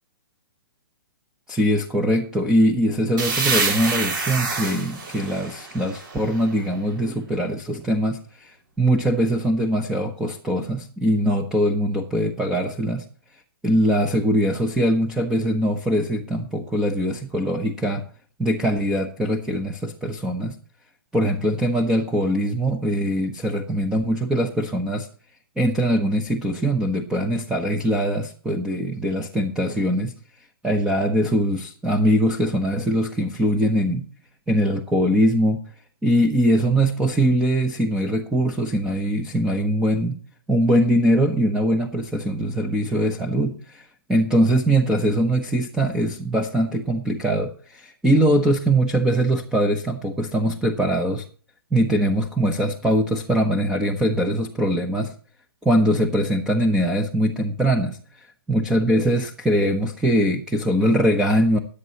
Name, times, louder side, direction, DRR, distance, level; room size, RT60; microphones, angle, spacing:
voice 1, 1.5-13.0 13.6-18.0 18.4-20.6 21.1-25.1 25.6-30.1 30.6-34.0 34.5-35.6 36.0-40.2 40.5-51.2 51.7-55.1 55.6-58.0 58.5-61.6, equal, 5° right, 3 dB, 1.0 m, -22 dB
sound 1, 3.2-6.8, right 4 dB, 55° right, 5.3 m, -27 dB
20.5 x 8.4 x 3.0 m, 0.41 s
hypercardioid pair, 150°, 12 cm